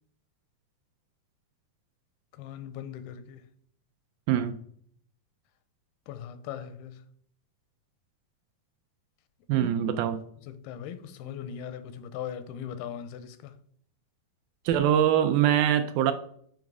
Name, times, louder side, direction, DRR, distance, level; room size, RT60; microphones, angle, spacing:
voice 1, 2.3-3.5 6.1-7.0 9.6-9.7 10.4-13.6, left 9 dB, 90° left, 2.6 m, -39 dB
voice 2, 4.3-4.6 9.5-10.2 14.7-16.1, right 10 dB, 80° right, 2.1 m, -23 dB
9.3 x 5.2 x 4.7 m
omnidirectional pair, 4.4 m